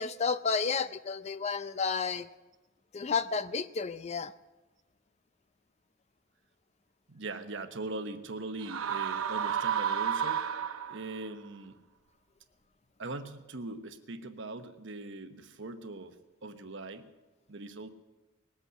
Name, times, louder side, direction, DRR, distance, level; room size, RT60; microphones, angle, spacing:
voice 1, 0.0-2.3 2.9-4.3, left 5 dB, 30° left, 13 dB, 0.4 m, -31 dB
voice 2, 7.1-11.8 13.0-16.2 16.4-17.1 17.5-17.9, right 2 dB, 60° right, 8 dB, 1.0 m, -41 dB
sound 1, 8.6-11.2, right 8 dB, 85° right, 0.9 m, -31 dB
20.5 x 8.2 x 6.4 m, 1.1 s
head